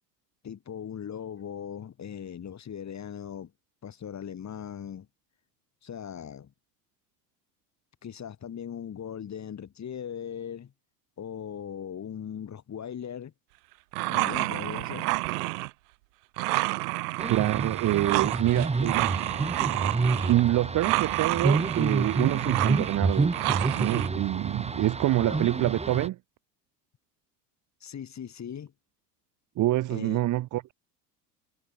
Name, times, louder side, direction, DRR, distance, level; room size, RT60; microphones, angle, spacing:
voice 1, 0.4-3.5 3.8-5.1 5.8-6.5 8.0-10.7 11.2-13.3 14.1-15.1 25.2-25.6 27.8-28.7 29.9-30.2, left 8 dB, 35° left, 4.2 m, -39 dB
sound 1, 13.9-15.7 16.4-20.4 20.8-24.1, right 25 dB, 65° right, 1.5 m, -29 dB
sound 2, 17.2-26.1, right 4 dB, 15° right, 1.7 m, -29 dB
voice 2, 17.3-19.2 20.3-23.3 23.8-26.2 29.6-30.7, right 15 dB, 40° right, 0.9 m, -26 dB
hypercardioid pair, 75°, 49 cm